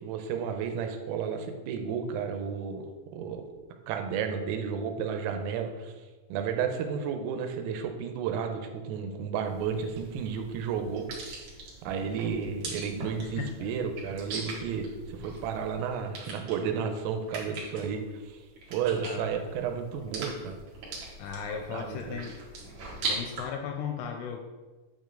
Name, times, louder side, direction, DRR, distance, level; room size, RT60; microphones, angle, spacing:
voice 1, 0.0-2.9 3.1-3.5 3.9-5.9 6.3-11.1 11.8-18.4 18.7-20.5 21.5-22.2, right 6 dB, 85° right, 5 dB, 3.3 m, -32 dB
sound 1, 9.5-23.4, right 3 dB, 60° right, 2.2 m, -41 dB
voice 2, 13.2-13.7 19.0-19.5 21.2-22.4 23.1-24.4, left 7 dB, 85° left, 4 dB, 2.8 m, -36 dB
9.1 x 5.3 x 3.8 m, 1.3 s
omnidirectional pair, 5.9 m